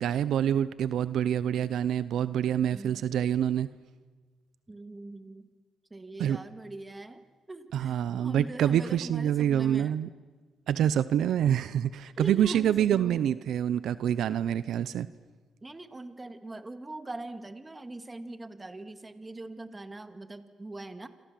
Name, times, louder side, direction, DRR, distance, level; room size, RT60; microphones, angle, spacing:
voice 1, 0.0-3.7 6.2-6.4 7.7-10.1 10.7-15.1, right 10 dB, 75° right, 15 dB, 0.7 m, -26 dB
voice 2, 2.7-3.1 4.7-5.5 5.9-10.0 12.1-13.4 15.6-21.1, right 2 dB, 20° right, 9 dB, 2.1 m, -41 dB
27.0 x 26.5 x 7.6 m, 1.4 s
cardioid pair, 90°, 0 cm